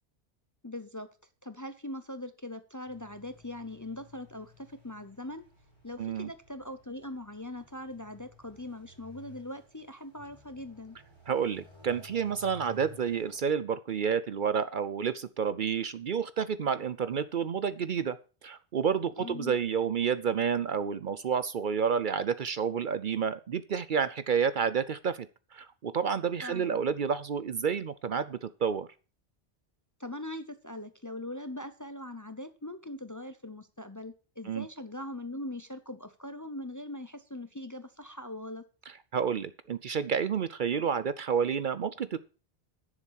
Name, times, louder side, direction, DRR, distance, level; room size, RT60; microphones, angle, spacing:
voice 1, 0.6-1.1 1.4-5.5 5.8-11.0 19.2-19.6 26.4-26.8 30.0-38.6, left 1 dB, 20° left, 11 dB, 0.6 m, -41 dB
sound 1, 2.9-13.4, left 1 dB, 25° right, 5.7 m, -56 dB
voice 2, 6.0-6.3 11.3-18.2 18.4-25.3 25.5-28.9 34.5-34.6 39.1-42.2, right 7 dB, 55° right, 14 dB, 0.7 m, -30 dB
10.5 x 7.3 x 6.3 m, 0.35 s
omnidirectional pair, 1.1 m